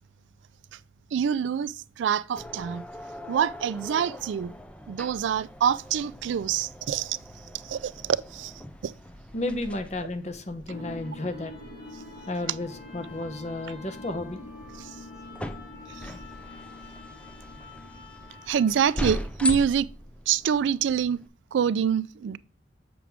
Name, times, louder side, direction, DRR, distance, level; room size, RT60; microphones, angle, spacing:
voice 1, 1.1-2.8 3.3-4.5 4.9-7.2 7.6-8.5 8.8-8.9 15.9-16.1 18.5-19.9 20.3-21.2 21.5-22.4, right 8 dB, 80° right, 0.3 m, -26 dB
sound 1, 2.4-21.3, left 1 dB, 5° left, 0.4 m, -40 dB
voice 2, 9.3-11.5 12.3-14.4, left 2 dB, 40° left, 0.9 m, -32 dB
sound 2, 10.7-18.9, left 2 dB, 60° left, 1.8 m, -44 dB
7.2 x 6.0 x 3.5 m
head